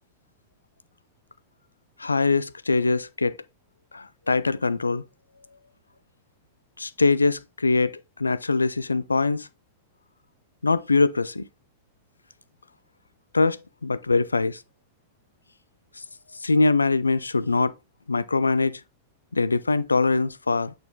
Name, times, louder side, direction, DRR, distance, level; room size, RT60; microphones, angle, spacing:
voice 1, 2.0-3.4 3.9-5.0 6.8-9.5 10.6-11.5 13.3-14.6 16.4-17.7 18.1-18.8 19.3-20.7, left 3 dB, 80° left, 0.3 m, -23 dB
8.7 x 4.1 x 3.7 m
figure-of-eight pair, 90°, 0 cm